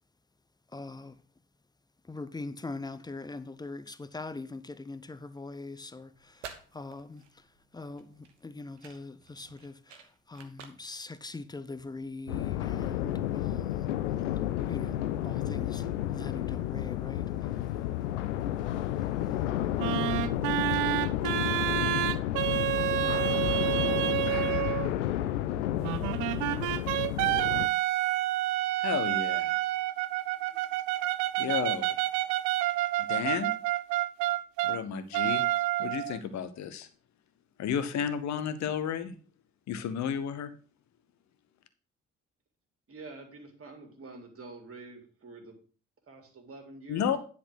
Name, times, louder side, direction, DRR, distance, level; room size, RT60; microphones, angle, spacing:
voice 1, 0.7-1.2 2.1-6.4 6.7-7.2 7.7-13.9 14.7-15.0 15.2-17.3, left 3 dB, 10° left, 0.6 m, -42 dB
sound 1, 6.1-12.2, right 7 dB, 80° right, 0.9 m, -52 dB
sound 2, 12.3-27.7, left 12 dB, 75° left, 0.5 m, -31 dB
sound 3, 19.8-24.9 25.8-34.8 35.1-36.2, right 16 dB, 60° right, 0.5 m, -29 dB
voice 2, 28.8-29.6 31.3-32.0 33.0-33.5 34.6-35.4 35.8-36.9 37.6-39.2 39.7-40.5 46.9-47.2, left 8 dB, 50° left, 1.0 m, -32 dB
voice 3, 42.9-45.6 46.1-47.2, right 3 dB, 40° right, 2.3 m, -47 dB
10.0 x 4.3 x 6.0 m
figure-of-eight pair, 45°, 36 cm